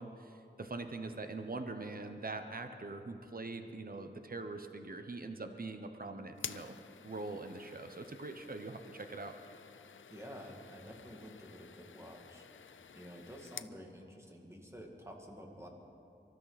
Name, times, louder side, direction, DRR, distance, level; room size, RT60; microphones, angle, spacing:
voice 1, 0.0-6.8 7.0-9.3, right 3 dB, 45° right, 7 dB, 0.9 m, -43 dB
sound 1, 6.3-13.8, left 7 dB, 75° left, 0.4 m, -51 dB
voice 2, 10.1-15.7, equal, 15° right, 0 dB, 2.3 m, -50 dB
25.0 x 13.5 x 4.2 m, 2.7 s
wide cardioid pair, 55°, 20 cm